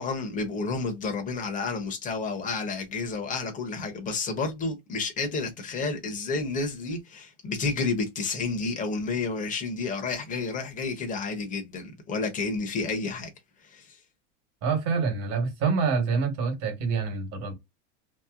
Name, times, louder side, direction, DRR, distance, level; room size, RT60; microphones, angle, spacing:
voice 1, 0.0-13.3 13.7-13.8, left 4 dB, 20° left, 1.0 m, -30 dB
voice 2, 14.6-17.5, right 5 dB, 50° right, 1.5 m, -26 dB
3.0 x 2.1 x 3.6 m
supercardioid pair, 140°, 35 cm